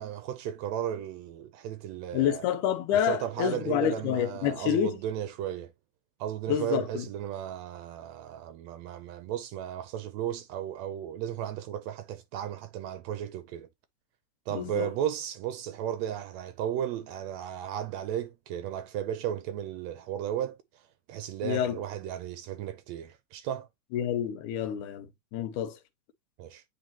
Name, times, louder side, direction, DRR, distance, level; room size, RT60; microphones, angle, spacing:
voice 1, 0.0-2.5 2.9-5.7 6.2-13.7 14.5-20.6 21.1-23.7 26.4-26.6, right 10 dB, 75° right, 1.7 m, -34 dB
voice 2, 2.1-5.0 6.5-7.1 14.5-14.9 21.4-21.8 23.9-25.8, left 10 dB, 90° left, 2.3 m, -28 dB
9.1 x 4.1 x 2.8 m
omnidirectional pair, 3.5 m